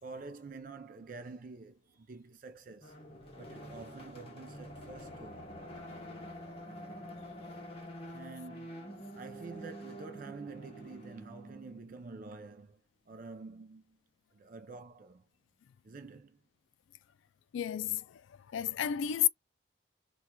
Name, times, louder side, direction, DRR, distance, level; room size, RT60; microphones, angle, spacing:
voice 1, 0.0-3.0 3.4-5.5 8.1-12.8 13.1-14.0 14.3-15.2 15.8-16.4, right 3 dB, 45° right, 0.4 m, -48 dB
sound 1, 2.8-12.0, equal, 30° left, 1.0 m, -47 dB
voice 2, 17.5-18.0 18.5-19.3, left 11 dB, 75° left, 0.3 m, -30 dB
4.3 x 2.4 x 2.2 m
head